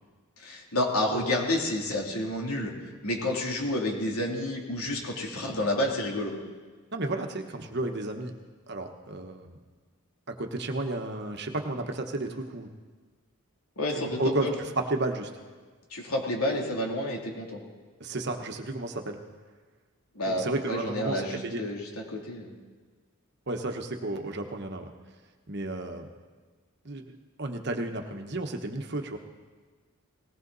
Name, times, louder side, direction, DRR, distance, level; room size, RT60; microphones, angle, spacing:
voice 1, 0.4-2.7 3.0-6.3 13.8-14.5 15.9-17.6 20.1-22.5, left 1 dB, 75° left, 0 dB, 3.0 m, -30 dB
voice 2, 6.9-8.3 8.7-9.6 10.3-12.7 14.0-14.5 14.8-15.3 18.0-19.2 20.3-21.6 23.5-24.9 25.5-26.1 26.8-29.2, right 2 dB, 50° right, 4 dB, 1.3 m, -32 dB
19.5 x 18.0 x 4.1 m, 1.4 s
head